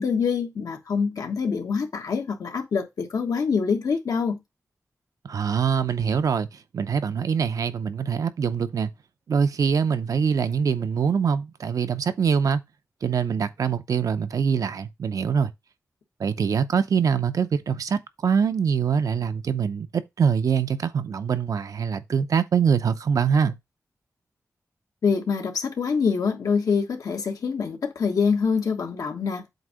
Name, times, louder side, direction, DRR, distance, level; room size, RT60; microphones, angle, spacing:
voice 1, 0.0-4.4 25.0-29.4, left 5 dB, 85° left, 1.2 m, -25 dB
voice 2, 5.2-6.5 6.7-8.9 9.3-12.6 13.0-15.5 16.2-23.6, right 6 dB, 80° right, 0.6 m, -24 dB
7.9 x 2.7 x 4.9 m
cardioid pair, 70°, 6 cm